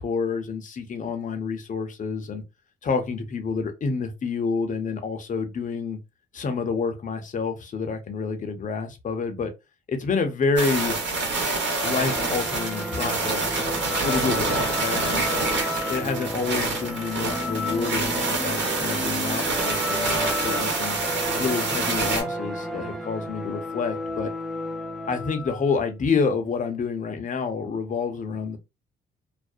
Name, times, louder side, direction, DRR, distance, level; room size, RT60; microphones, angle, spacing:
voice 1, 0.0-2.4 2.8-6.0 6.3-9.5 9.9-11.0 11.8-13.7 14.0-15.2 15.9-21.0 21.4-24.3 25.1-28.6, left 5 dB, 40° left, 0.6 m, -28 dB
sound 1, 10.6-22.2, right 3 dB, 65° right, 1.1 m, -27 dB
sound 2, 11.8-25.7, left 1 dB, ahead, 0.4 m, -32 dB
2.4 x 2.0 x 2.5 m
cardioid pair, 90°, 20 cm